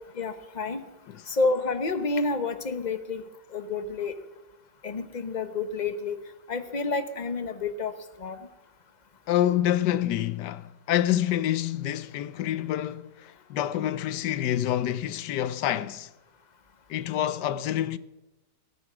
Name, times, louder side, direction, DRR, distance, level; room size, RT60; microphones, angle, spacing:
voice 1, 0.2-0.8 1.3-3.2 3.5-4.1 4.8-6.1 6.5-7.9 8.2-8.4, left 3 dB, 30° left, 1.0 m, -29 dB
voice 2, 9.3-13.1 13.5-16.1 16.9-18.0, left 12 dB, 80° left, 1.3 m, -27 dB
17.5 x 9.8 x 6.3 m
omnidirectional pair, 1.8 m